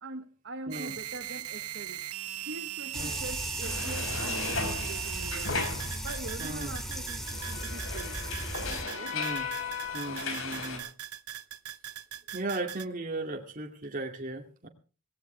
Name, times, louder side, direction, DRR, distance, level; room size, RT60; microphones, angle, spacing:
voice 1, 0.0-2.0 2.5-5.5 6.0-8.2 8.9-9.2, right 2 dB, 55° right, 1.2 m, -42 dB
sound 1, 0.7-12.9, right 13 dB, 90° right, 0.8 m, -40 dB
Alka Seltzer effervescent tablets sizzling, 2.9-8.8, equal, ahead, 2.5 m, -37 dB
sound 2, 3.6-6.4 6.7-10.8, left 4 dB, 60° left, 4.6 m, -36 dB
voice 2, 6.4-6.8 9.1-9.5 9.9-10.9 12.3-14.7, right 2 dB, 40° right, 2.4 m, -36 dB
18.5 x 17.5 x 3.4 m
head